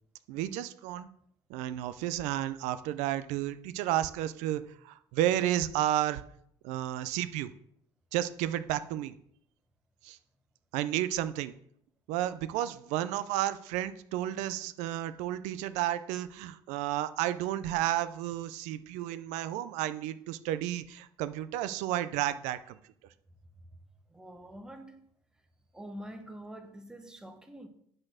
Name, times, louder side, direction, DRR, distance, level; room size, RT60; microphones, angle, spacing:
voice 1, 0.3-1.1 1.5-6.2 6.6-7.5 8.1-9.1 10.0-10.2 10.7-11.5 12.1-22.8, right 13 dB, 90° right, 0.5 m, -32 dB
voice 2, 24.1-25.1 25.7-27.7, right 1 dB, 5° right, 0.9 m, -46 dB
8.6 x 4.3 x 6.4 m
cardioid pair, 150°, 12 cm